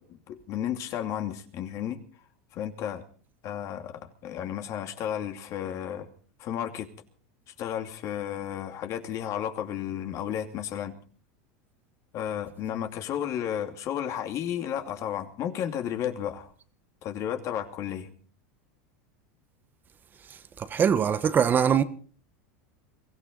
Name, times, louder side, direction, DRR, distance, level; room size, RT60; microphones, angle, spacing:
voice 1, 0.1-2.0 2.5-3.0 3.4-6.1 6.4-6.9 7.6-11.0 12.1-16.5 17.0-18.1, left 10 dB, 45° left, 2.6 m, -33 dB
voice 2, 20.7-21.8, right 7 dB, 25° right, 1.2 m, -22 dB
23.0 x 15.5 x 4.0 m
supercardioid pair, 130°, 8 cm